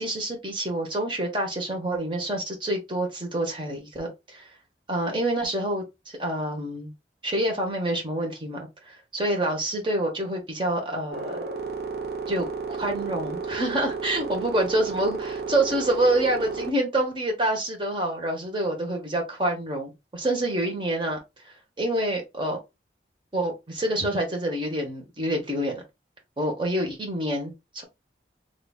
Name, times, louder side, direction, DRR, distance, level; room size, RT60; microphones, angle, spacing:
voice 1, 0.0-4.5 4.9-6.9 7.2-11.4 12.3-22.6 23.3-25.8 26.4-27.8, right 1 dB, 25° right, 1.1 m, -27 dB
sound 1, 11.1-16.7, right 4 dB, 60° right, 0.7 m, -32 dB
3.8 x 3.3 x 2.3 m
head